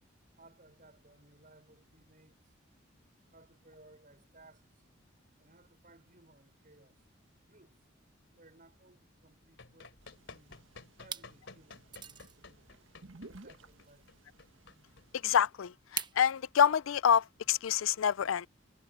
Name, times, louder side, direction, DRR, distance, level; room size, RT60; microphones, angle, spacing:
voice 1, 0.4-2.5 3.3-4.9 5.4-7.0 7.4-7.8 8.3-10.7 11.0-12.9 13.2-14.4, right 2 dB, 45° right, 5.8 m, -61 dB
Run, 9.5-15.7, left 4 dB, 65° left, 3.2 m, -54 dB
sound 1, 10.0-15.5, right 2 dB, 75° right, 1.7 m, -57 dB
sound 2, 10.2-10.6 11.0-11.3 11.9-12.4 13.9-14.0 16.0-16.2, right 7 dB, 20° right, 1.0 m, -40 dB
voice 2, 15.2-18.5, left 8 dB, 85° left, 0.4 m, -27 dB
head